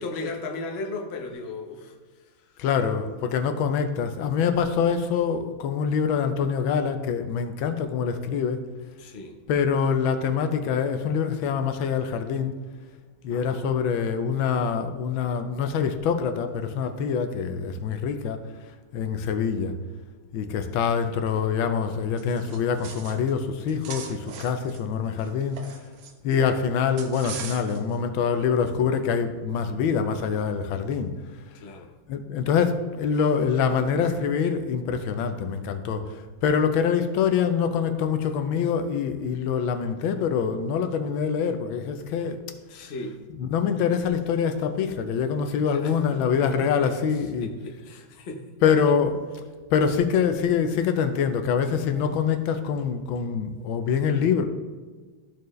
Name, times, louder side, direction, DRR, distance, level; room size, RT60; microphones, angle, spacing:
voice 1, 0.0-2.0 2.4-2.6 9.0-9.4 13.3-13.6 31.5-31.9 42.7-43.2 45.7-47.1 47.4-48.4, left 3 dB, 45° left, 1 dB, 0.8 m, -36 dB
voice 2, 2.6-8.7 9.5-12.6 13.2-18.4 18.9-19.7 20.3-25.6 26.2-31.1 32.1-42.4 43.4-47.5 48.6-49.2 49.7-54.4, left 6 dB, 80° left, 7 dB, 1.4 m, -25 dB
sound 1, 22.2-23.3 23.6-26.4 27.0-28.0, right 7 dB, 65° right, 0.9 m, -40 dB
13.5 x 4.5 x 3.1 m, 1.4 s
omnidirectional pair, 2.2 m